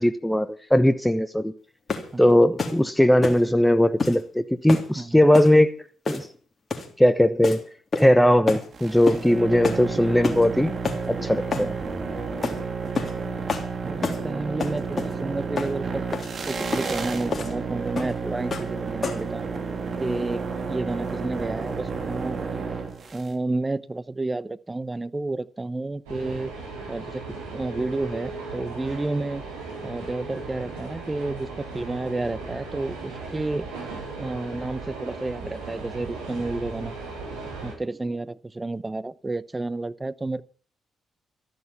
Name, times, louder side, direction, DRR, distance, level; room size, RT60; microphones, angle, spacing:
voice 1, 0.0-1.5 2.2-6.3 7.0-7.6 7.9-10.7 11.1-11.8, left 1 dB, 5° left, 1.1 m, -19 dB
sound 1, 1.9-2.1 2.6-2.8 3.2-3.4 4.0-4.2 4.7-4.9 5.3-5.5 6.0-6.4 6.7-6.9 7.4-7.6 7.9-8.2 8.5-8.7 9.1-9.2 9.6-9.8 10.2-10.5 10.8-11.0 11.5-11.7 12.4-12.6 12.9-13.2 13.5-13.7 14.0-14.2 14.6-15.1 15.6-15.7 16.1-16.3 16.7-16.9 17.3-17.5 18.0-18.2 18.5-18.7 19.0-19.3, left 4 dB, 40° left, 3.6 m, -28 dB
voice 2, 2.1-2.5 4.9-5.2 11.6-11.7 13.8-16.0 16.5-19.5 20.0-22.4 23.1-26.5 26.9-27.2 27.5-29.4 29.8-33.7 34.2-36.9 37.6-40.4, right 2 dB, 25° right, 0.9 m, -31 dB
sound 2, 8.7-23.3, right 5 dB, 50° right, 3.3 m, -31 dB
sound 3, 26.1-37.7, right 3 dB, 85° right, 4.7 m, -37 dB
13.5 x 11.0 x 7.1 m
hypercardioid pair, 45°, 0 cm